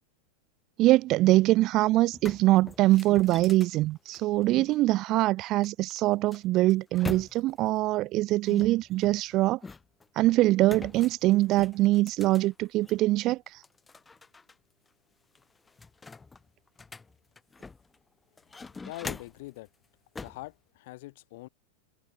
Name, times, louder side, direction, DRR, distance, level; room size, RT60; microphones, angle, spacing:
voice 1, 0.8-9.6 10.2-13.4, right 17 dB, 35° right, 2.1 m, -23 dB
sound 1, 1.6-1.7 2.0-4.7 5.6-7.7 8.5-10.1 10.6-13.1 13.5-14.5 14.9-15.0 15.3-18.0 18.4-19.5 20.1-20.5, left 4 dB, 10° left, 2.9 m, -43 dB
voice 2, 18.8-19.7 20.2-21.5, left 20 dB, 50° left, 4.9 m, -43 dB
figure-of-eight pair, 90°, 0 cm